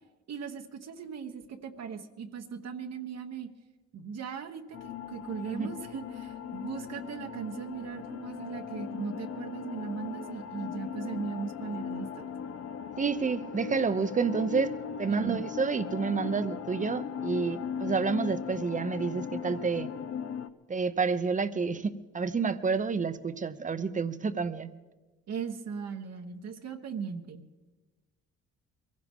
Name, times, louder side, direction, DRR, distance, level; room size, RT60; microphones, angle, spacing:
voice 1, 0.3-3.5 3.9-12.3 15.1-15.4 25.3-27.4, right 6 dB, 60° right, 5 dB, 1.2 m, -38 dB
sound 1, 4.7-20.5, left 7 dB, 50° left, 0.8 m, -38 dB
voice 2, 13.0-19.9 20.7-24.7, right 5 dB, 25° right, 12 dB, 0.8 m, -29 dB
23.0 x 15.5 x 3.7 m, 1.2 s
cardioid pair, 90°, 30 cm